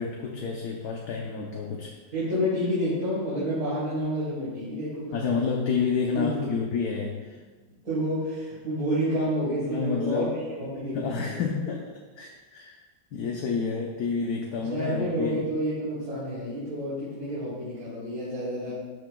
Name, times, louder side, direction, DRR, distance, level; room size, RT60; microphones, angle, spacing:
voice 1, 0.0-1.9 5.1-7.4 9.7-10.4 10.9-12.8 13.1-15.5, left 5 dB, 65° left, 0 dB, 1.2 m, -29 dB
voice 2, 2.1-5.2 6.1-6.5 7.8-11.5 14.6-18.8, equal, 50° right, -12 dB, 3.4 m, -29 dB
13.0 x 8.0 x 2.3 m, 1.4 s
omnidirectional pair, 2.1 m